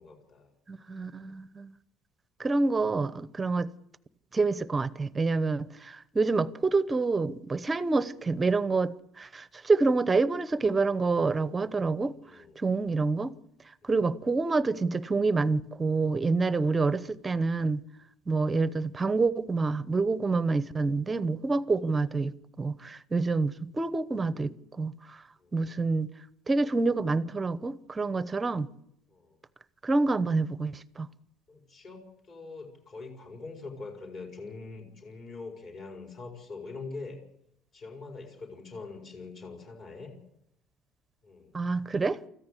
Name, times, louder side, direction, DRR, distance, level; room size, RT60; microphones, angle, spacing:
voice 1, 0.0-0.5 1.1-1.3 2.8-2.9 3.4-3.5 7.9-8.0 12.2-12.6 13.8-14.1 21.8-21.9 25.4-25.7 29.1-29.4 31.5-37.2 37.7-40.2 41.2-41.5, left 3 dB, 40° left, 4.9 m, -44 dB
voice 2, 0.7-1.7 2.4-3.7 4.3-12.1 12.6-13.4 13.8-17.8 18.3-25.2 25.5-26.1 26.5-28.7 29.8-31.1 41.5-42.2, right 3 dB, 15° right, 0.8 m, -27 dB
24.5 x 14.5 x 8.3 m
cardioid pair, 150°, 0 cm